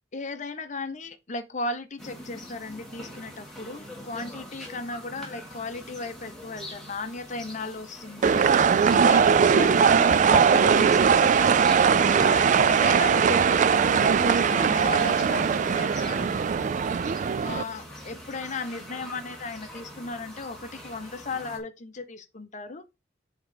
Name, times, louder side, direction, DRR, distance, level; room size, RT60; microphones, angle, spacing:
voice 1, 0.1-8.5 8.9-11.7 12.1-16.5 17.4-22.9, left 3 dB, 40° left, 0.8 m, -36 dB
sound 1, 2.0-21.6, equal, ahead, 2.0 m, -42 dB
sound 2, 8.2-17.6, right 6 dB, 40° right, 0.3 m, -20 dB
7.0 x 3.7 x 5.0 m
head